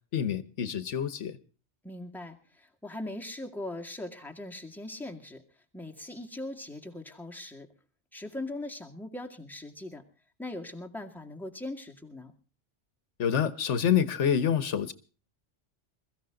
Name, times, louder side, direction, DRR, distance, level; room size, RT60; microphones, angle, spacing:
voice 1, 0.1-1.4 13.2-14.9, left 8 dB, 85° left, 1.4 m, -27 dB
voice 2, 1.8-5.4 5.7-7.7 8.1-10.0 10.4-12.3, left 1 dB, ahead, 2.1 m, -40 dB
22.0 x 14.5 x 3.8 m
omnidirectional pair, 1.2 m